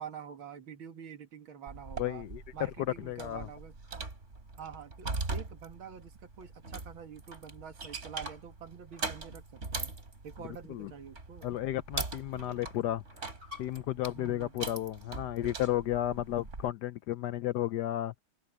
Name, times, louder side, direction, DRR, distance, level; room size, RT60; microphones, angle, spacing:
voice 1, 0.0-2.3 2.5-3.7 4.6-9.9 10.2-11.5 12.3-12.6 14.2-14.5, right 7 dB, 85° right, 2.5 m, -47 dB
sound 1, 1.7-16.7, right 3 dB, 35° right, 3.4 m, -41 dB
voice 2, 2.0-2.4 3.0-3.5 10.7-10.9 11.4-13.3 13.6-18.1, left 13 dB, 70° left, 1.0 m, -33 dB
open air
omnidirectional pair, 2.1 m